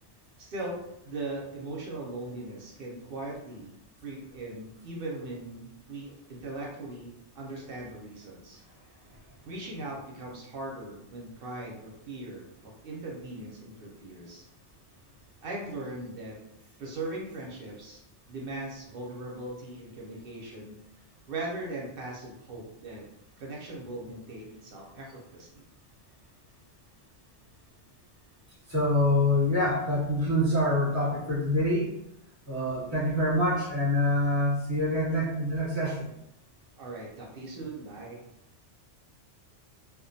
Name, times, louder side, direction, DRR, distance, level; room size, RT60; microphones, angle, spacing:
voice 1, 0.4-3.7 4.0-7.1 7.3-8.6 9.4-14.5 15.4-16.4 16.8-20.8 21.3-23.0 23.4-25.7 36.8-38.2, right 2 dB, 60° right, -2 dB, 0.6 m, -39 dB
voice 2, 28.7-31.9 32.5-36.1, left 1 dB, 20° right, -8 dB, 0.5 m, -26 dB
2.3 x 2.1 x 2.6 m, 0.81 s
omnidirectional pair, 1.3 m